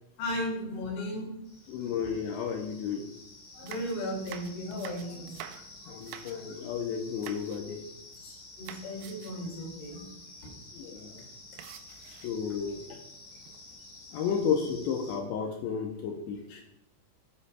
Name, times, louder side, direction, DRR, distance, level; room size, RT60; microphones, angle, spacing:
voice 1, 0.2-1.3 3.5-5.6 8.2-10.1 10.4-10.5, left 1 dB, 70° left, 0 dB, 4.8 m, -36 dB
sound 1, 1.4-15.2, left 2 dB, 45° left, 3.5 m, -50 dB
voice 2, 1.7-3.2 5.9-7.8 10.7-11.2 12.2-13.0 14.1-16.6, left 6 dB, 85° left, 2 dB, 2.4 m, -32 dB
sound 2, 3.5-6.7 7.2-7.6 7.9-8.3 8.7-9.5 9.8-9.9 10.2-10.4 11.6-12.5 13.2-13.7, right 11 dB, 85° right, 3.4 m, -48 dB
18.0 x 8.4 x 2.3 m, 0.84 s
omnidirectional pair, 6.0 m